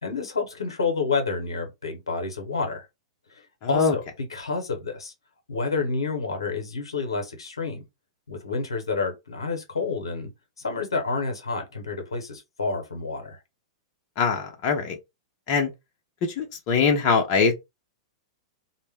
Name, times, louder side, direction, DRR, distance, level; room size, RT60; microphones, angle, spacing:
voice 1, 0.0-2.9 3.3-5.1 5.5-7.8 8.3-10.3 10.6-13.4, left 4 dB, 90° left, 0.8 m, -29 dB
voice 2, 3.6-4.0 14.2-15.0 15.5-15.7 16.4-17.5, left 5 dB, 45° left, 0.6 m, -22 dB
2.1 x 2.1 x 3.3 m
hypercardioid pair, 105°, 3 cm